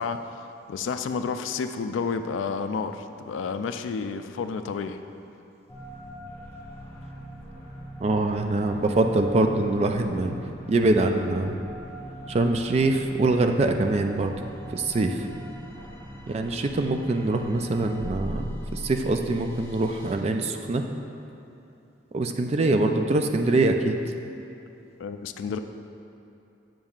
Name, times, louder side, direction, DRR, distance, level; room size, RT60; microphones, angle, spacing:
voice 1, 0.0-5.0 25.0-25.6, left 5 dB, 90° left, 8 dB, 0.3 m, -30 dB
sound 1, 5.7-20.1, equal, 10° left, 1.2 m, -41 dB
voice 2, 8.0-10.3 10.7-11.6 12.3-14.3 14.7-15.2 16.3-20.8 22.1-24.0, right 2 dB, 35° right, 5 dB, 0.3 m, -24 dB
7.5 x 7.0 x 2.4 m, 2.9 s
head